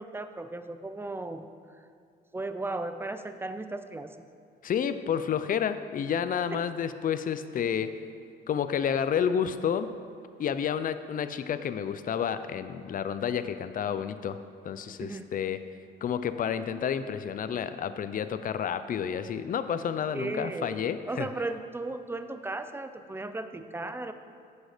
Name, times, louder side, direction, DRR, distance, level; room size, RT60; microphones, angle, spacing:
voice 1, 0.0-1.4 2.3-4.2 6.5-6.7 15.0-15.2 20.1-24.1, right 2 dB, 10° right, 9 dB, 0.5 m, -36 dB
voice 2, 4.6-7.9 8.5-9.9 10.4-14.4 14.6-15.6 16.0-21.3, left 8 dB, 45° left, 11 dB, 0.5 m, -30 dB
9.5 x 6.5 x 5.0 m, 2.3 s
cardioid pair, 90°, 20 cm